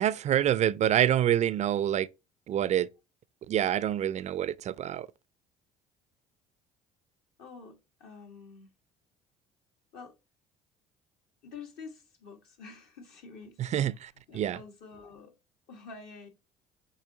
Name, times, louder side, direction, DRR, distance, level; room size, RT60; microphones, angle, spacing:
voice 1, 0.0-2.1 2.5-2.9 3.5-5.1 13.6-14.6, right 11 dB, 40° right, 0.4 m, -27 dB
voice 2, 7.4-8.7 9.9-10.1 11.4-13.6 13.9-15.3 15.7-16.3, left 4 dB, 65° left, 1.4 m, -48 dB
6.9 x 2.8 x 2.8 m
hypercardioid pair, 60°, 17 cm